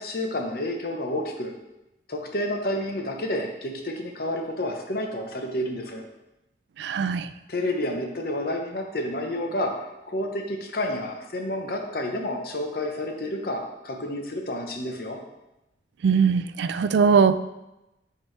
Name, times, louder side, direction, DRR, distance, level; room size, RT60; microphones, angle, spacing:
voice 1, 0.0-1.5 2.1-6.1 7.5-9.8 10.1-15.2, left 1 dB, 55° left, 3 dB, 0.9 m, -30 dB
voice 2, 6.8-7.3 16.0-17.4, right 6 dB, 75° right, 13 dB, 0.3 m, -20 dB
8.4 x 4.6 x 3.3 m, 0.95 s
head